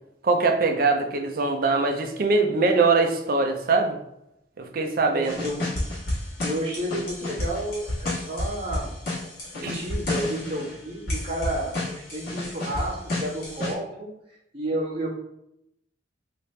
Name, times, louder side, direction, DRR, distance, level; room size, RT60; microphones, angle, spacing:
voice 1, 0.2-4.0 4.6-5.4 9.6-9.8, right 3 dB, 50° right, 4 dB, 0.5 m, -22 dB
voice 2, 5.1-5.8 6.4-9.0 9.5-14.1 14.5-15.1, right 1 dB, 30° right, -7 dB, 1.3 m, -31 dB
sound 1, 5.2-10.8 11.1-13.7, left 1 dB, 55° left, 1.4 m, -31 dB
3.2 x 2.8 x 3.1 m, 0.82 s
head